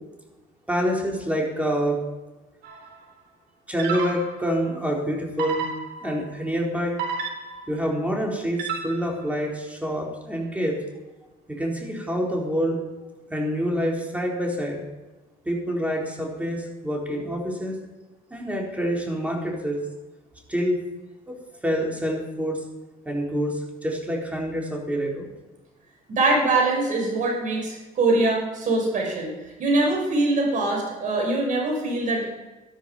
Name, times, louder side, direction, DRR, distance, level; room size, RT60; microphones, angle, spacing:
voice 1, 0.7-2.0 3.7-5.7 6.0-7.0 7.7-10.8 11.5-12.8 13.3-14.8 15.5-17.8 18.3-19.8 20.5-20.8 21.3-22.6 23.0-25.3, equal, 10° right, -1 dB, 3.7 m, -27 dB
sound 1, 2.6-3.0 3.8-4.5 5.4-6.3 7.0-7.8 8.6-9.2, right 5 dB, 80° right, 3.8 m, -31 dB
voice 2, 26.1-29.3 29.6-32.2, right 2 dB, 50° right, 0 dB, 5.7 m, -23 dB
12.5 x 12.5 x 5.3 m, 1.1 s
cardioid pair, 110°, 17 cm